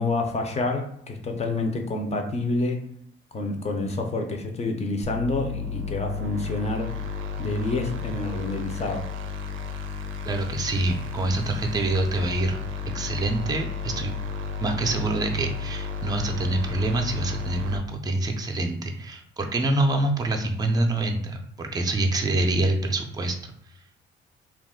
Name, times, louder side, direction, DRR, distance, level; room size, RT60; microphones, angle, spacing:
voice 1, 0.0-2.8 3.3-6.9 7.4-9.1, left 2 dB, 35° left, 3 dB, 0.5 m, -28 dB
sound 1, 5.0-17.8, left 5 dB, 85° right, 0.4 m, -33 dB
voice 2, 10.2-12.6 12.9-14.2 14.6-23.5, right 2 dB, 20° right, 3 dB, 0.4 m, -26 dB
2.3 x 2.1 x 3.5 m, 0.70 s
cardioid pair, 90°, 20 cm